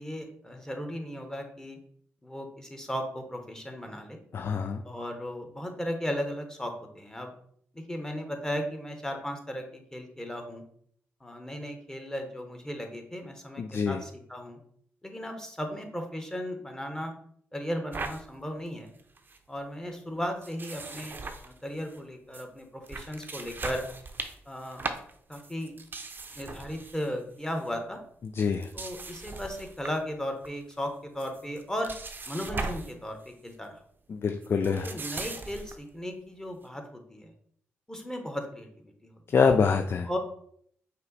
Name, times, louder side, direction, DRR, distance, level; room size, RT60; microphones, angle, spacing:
voice 1, 0.0-1.8 2.2-4.2 4.8-7.3 7.7-10.6 11.2-14.6 15.0-17.1 17.5-18.9 19.5-21.2 21.4-23.8 24.5-24.8 25.3-25.7 26.3-28.0 28.7-31.9 32.3-33.8 34.6-37.3 37.9-38.7 39.0-39.1 40.0-40.2, equal, 10° left, 4 dB, 1.0 m, -36 dB
voice 2, 4.3-4.8 13.6-14.0 28.4-28.7 34.1-34.9 39.3-40.1, left 5 dB, 50° left, 5 dB, 0.4 m, -25 dB
sound 1, 17.9-18.2 18.7-18.8 19.0-19.4 20.4-22.0 22.3-22.4 22.8-27.1 27.4-27.7 28.4-30.0 30.4-30.8 31.2-33.0 33.2-33.5 34.4-35.8, right 3 dB, 40° right, 0.6 m, -39 dB
5.4 x 2.1 x 4.0 m, 0.64 s
supercardioid pair, 55°, 5 cm